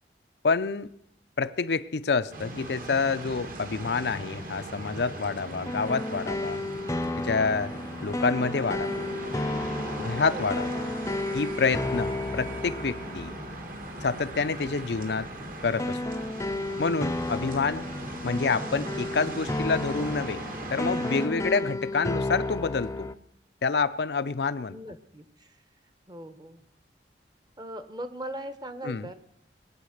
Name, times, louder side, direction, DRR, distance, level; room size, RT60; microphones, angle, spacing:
voice 1, 0.4-0.9 1.4-6.6 7.2-7.7 8.0-9.1 10.0-10.8 11.3-13.4 14.0-15.3 15.6-16.0 16.8-17.9 18.2-20.4 20.7-23.1 23.6-24.8 28.8-29.1, left 4 dB, 70° left, 12 dB, 0.6 m, -28 dB
sound 1, 2.3-21.3, right 1 dB, 50° right, 1.7 m, -39 dB
sound 2, 3.3-23.1, left 2 dB, 20° left, 0.5 m, -34 dB
voice 2, 10.3-10.6 24.7-25.2 26.1-26.6 27.6-29.1, right 1 dB, 25° right, 11 dB, 1.0 m, -39 dB
20.5 x 8.7 x 6.6 m, 0.76 s
head